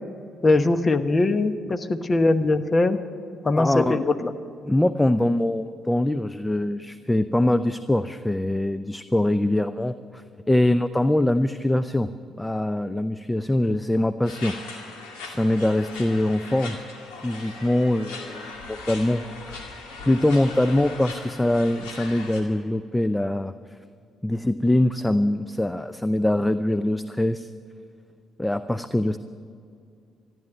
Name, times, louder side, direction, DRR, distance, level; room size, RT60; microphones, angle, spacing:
voice 1, 0.4-3.0 3.4-4.3, left 2 dB, 35° left, 10 dB, 1.1 m, -21 dB
voice 2, 3.5-4.0 4.6-12.1 12.4-14.5 15.3-16.8 17.2-19.6 20.0-23.5 24.2-27.5 28.4-29.2, left 1 dB, 10° left, 12 dB, 0.5 m, -23 dB
sound 1, 14.2-22.4, left 3 dB, 85° left, 2.1 m, -39 dB
14.0 x 11.0 x 8.9 m, 2.4 s
hypercardioid pair, 55°, 0 cm